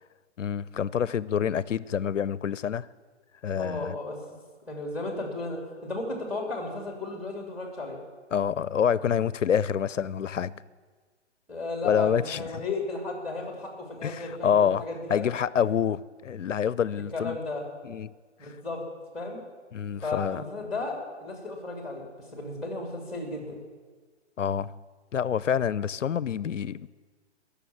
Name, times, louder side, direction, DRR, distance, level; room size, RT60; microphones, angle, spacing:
voice 1, 0.4-2.9 3.4-4.0 8.3-10.6 11.8-12.6 14.0-17.4 17.8-18.1 19.7-20.4 24.4-24.7 25.1-26.9, left 8 dB, 85° left, 20 dB, 0.6 m, -27 dB
voice 2, 3.6-4.4 4.7-8.0 11.5-15.3 17.1-17.6 18.4-18.8 19.1-19.4 20.0-20.9 21.2-23.6, left 2 dB, ahead, 1 dB, 2.8 m, -34 dB
20.5 x 7.0 x 7.2 m, 1.5 s
figure-of-eight pair, 140°, 36 cm